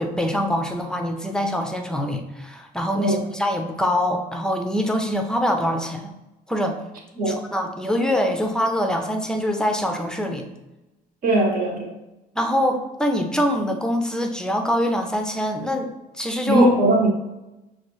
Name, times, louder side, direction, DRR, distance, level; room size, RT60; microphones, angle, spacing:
voice 1, 0.0-6.1 6.5-6.8 7.3-10.5 12.4-16.7, equal, 5° left, 4 dB, 0.5 m, -24 dB
voice 2, 11.2-11.9 16.4-17.1, right 1 dB, 60° right, 0 dB, 1.1 m, -19 dB
5.7 x 2.4 x 3.1 m, 0.98 s
cardioid pair, 110°, 17 cm